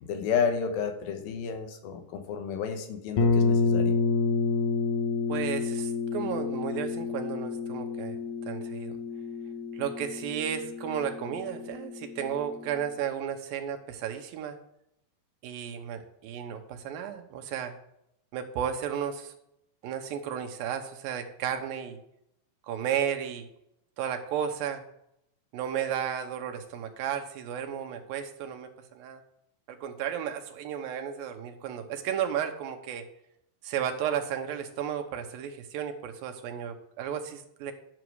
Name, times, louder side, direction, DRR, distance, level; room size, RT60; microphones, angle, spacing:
voice 1, 0.0-4.0, left 6 dB, 90° left, 6 dB, 2.9 m, -31 dB
sound 1, 3.2-12.8, left 4 dB, 65° left, 2.2 m, -29 dB
voice 2, 5.3-8.2 8.5-9.0 9.7-14.6 15.4-17.7 18.3-19.3 19.8-22.0 22.7-23.5 24.0-24.8 25.5-29.2 29.7-33.1 33.6-37.7, right 9 dB, 85° right, 6 dB, 2.8 m, -33 dB
10.5 x 6.2 x 4.8 m, 0.78 s
omnidirectional pair, 4.0 m